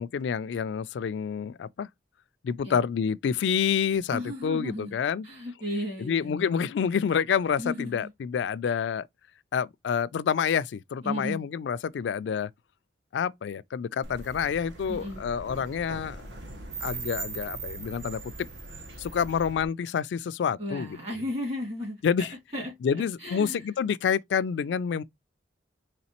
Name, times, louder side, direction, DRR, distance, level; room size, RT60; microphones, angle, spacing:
voice 1, 0.0-1.9 2.4-5.3 6.0-9.1 9.5-12.5 13.1-16.2 16.8-18.3 19.0-20.9 22.0-22.3 22.8-25.0, left 7 dB, 70° left, 0.3 m, -28 dB
voice 2, 4.1-5.0 5.2-6.6 7.6-8.1 8.6-8.8 11.0-11.4 14.9-15.2 20.6-22.3 22.5-22.7 23.2-23.6, left 1 dB, 35° right, 2.2 m, -34 dB
sound 1, 14.0-19.6, right 3 dB, 75° right, 1.1 m, -40 dB
4.1 x 3.1 x 2.8 m
head